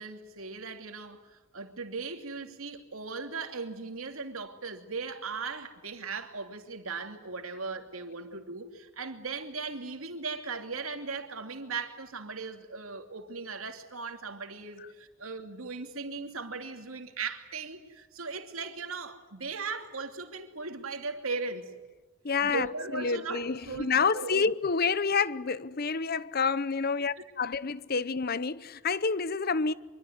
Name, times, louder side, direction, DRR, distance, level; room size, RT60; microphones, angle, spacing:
voice 1, 0.0-21.7 22.4-24.4, right 4 dB, 85° right, 2.8 m, -38 dB
voice 2, 22.2-29.7, left 5 dB, 45° left, 0.8 m, -28 dB
25.0 x 24.0 x 9.5 m
head